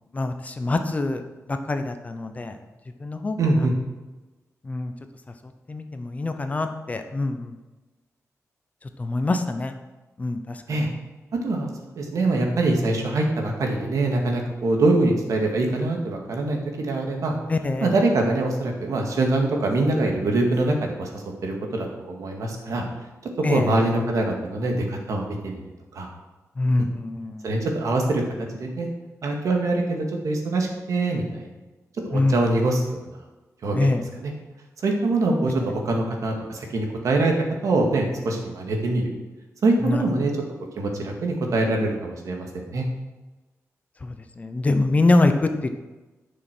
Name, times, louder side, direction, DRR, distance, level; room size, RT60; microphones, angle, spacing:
voice 1, 0.1-1.2 1.5-2.6 3.0-3.4 4.7-4.9 5.7-7.5 9.0-9.7 10.2-10.6 17.5-17.9 23.4-23.7 26.6-27.5 32.1-32.4 33.7-34.0 39.8-40.0 44.0-45.5, left 2 dB, 25° left, 7 dB, 0.8 m, -24 dB
voice 2, 3.4-3.7 10.7-10.9 11.4-11.7 12.0-17.4 17.8-22.8 23.5-25.6 25.9-26.1 26.8-26.9 27.4-28.2 28.5-28.9 29.2-31.5 32.0-33.0 33.6-34.3 34.8-35.5 35.8-37.3 37.6-39.1 39.6-40.3 40.8-42.9, right 2 dB, 80° right, 1 dB, 2.1 m, -24 dB
11.0 x 6.4 x 6.1 m, 1.2 s
wide cardioid pair, 175°, 6 cm